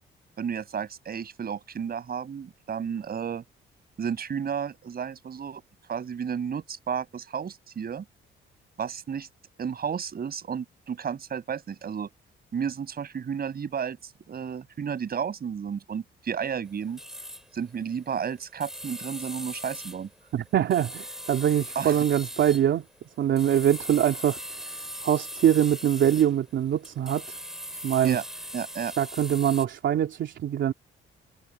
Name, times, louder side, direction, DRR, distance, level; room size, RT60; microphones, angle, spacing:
voice 1, 0.4-3.4 4.0-5.6 5.9-8.0 8.8-9.3 9.6-12.1 12.5-17.0 17.5-20.1 21.7-22.0 28.0-28.2 28.5-28.9, right 7 dB, 50° right, 6.5 m, -32 dB
sound 1, 16.7-26.6 26.8-29.6, equal, ahead, 6.7 m, -39 dB
voice 2, 20.3-22.9 23.2-24.4 24.7-24.8 25.0-27.3 27.8-28.2 29.0-30.7, right 10 dB, 70° right, 3.2 m, -23 dB
cardioid pair, 90°, 20 cm